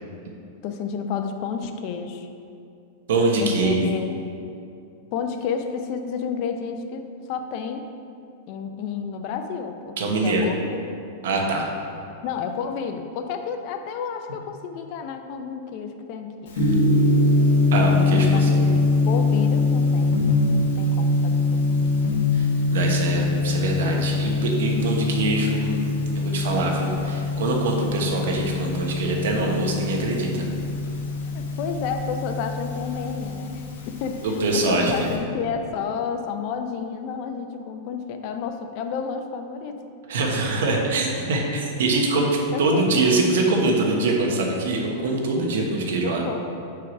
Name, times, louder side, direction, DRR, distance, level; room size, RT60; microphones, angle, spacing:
voice 1, 0.6-2.3 3.4-4.2 5.1-7.9 8.5-9.9 10.2-10.9 12.2-16.5 18.1-21.9 31.3-39.8 42.5-43.0 46.0-46.4, left 6 dB, 45° left, 6 dB, 0.5 m, -31 dB
voice 2, 3.1-3.8 10.0-10.5 11.2-11.7 17.7-18.7 22.3-25.8 26.1-30.4 34.2-35.1 40.1-46.2, right 2 dB, 80° right, 0 dB, 1.2 m, -23 dB
Gong, 16.5-35.1, left 2 dB, 70° left, 1.2 m, -23 dB
4.7 x 4.7 x 5.9 m, 2.6 s
supercardioid pair, 155°, 0 cm